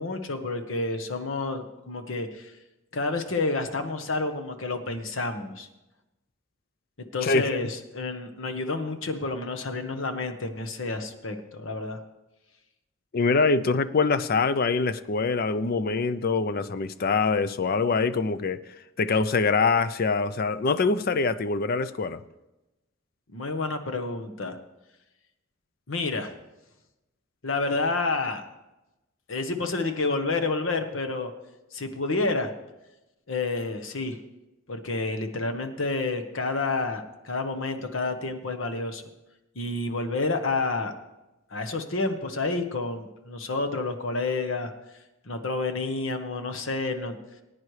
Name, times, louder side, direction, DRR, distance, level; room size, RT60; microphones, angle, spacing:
voice 1, 0.0-2.5 2.9-5.7 7.0-12.0 23.3-24.6 25.9-26.3 27.4-28.4 29.3-31.3 31.7-32.5 33.3-34.2 34.7-39.0 39.5-40.9 41.5-44.7 45.2-47.2, left 3 dB, 75° left, 6 dB, 1.1 m, -29 dB
voice 2, 7.2-7.5 13.1-18.6 19.0-22.2, left 4 dB, 50° left, 14 dB, 0.5 m, -24 dB
18.5 x 9.6 x 3.2 m, 0.99 s
head